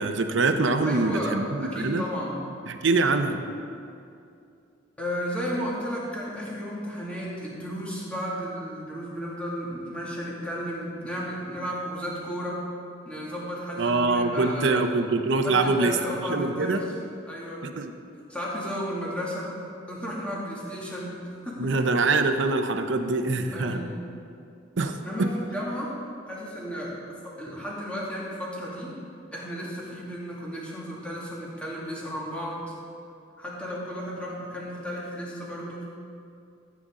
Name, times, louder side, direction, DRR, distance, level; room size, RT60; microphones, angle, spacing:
voice 1, 0.0-2.1 2.7-3.4 13.8-16.0 16.3-16.8 17.6-17.9 21.6-23.8 24.8-25.3, right 3 dB, 70° right, 7 dB, 0.7 m, -24 dB
voice 2, 0.9-2.4 3.0-3.1 5.0-12.6 13.0-14.8 15.4-16.8 17.3-17.6 18.3-19.5 19.9-21.7 23.5-23.9 25.0-25.9 26.2-27.0 27.2-29.0 29.3-32.7 33.4-35.8, equal, 5° left, -6 dB, 2.3 m, -33 dB
14.0 x 8.5 x 3.8 m, 2.5 s
head